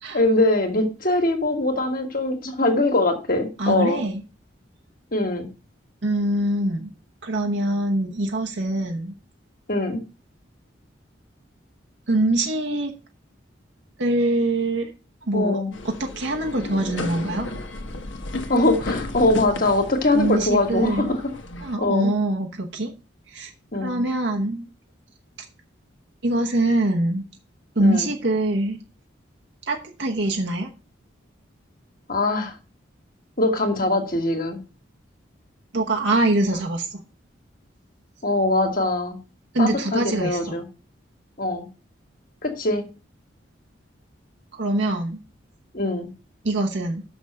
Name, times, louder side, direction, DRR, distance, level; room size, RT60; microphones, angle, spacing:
voice 1, 0.1-4.0 5.1-5.5 9.7-10.0 15.3-15.7 18.5-21.2 21.8-22.1 23.7-24.0 27.8-28.1 32.1-32.5 33.4-34.6 36.5-36.6 38.2-39.2 39.6-40.7 41.4-41.7 42.4-42.8 45.7-46.1, left 2 dB, 45° left, 4 dB, 1.8 m, -22 dB
voice 2, 3.6-4.2 6.0-6.9 7.2-9.2 12.1-12.9 14.0-14.9 15.3-17.5 20.1-21.1 21.6-22.9 23.3-23.5 23.8-24.6 26.2-27.2 27.7-28.8 29.7-30.7 35.7-37.0 39.5-40.6 44.5-45.2 46.4-47.0, right 1 dB, 65° right, 2 dB, 1.1 m, -24 dB
sound 1, 15.7-21.7, left 2 dB, 75° left, 1.3 m, -34 dB
6.3 x 6.1 x 6.7 m, 0.32 s
head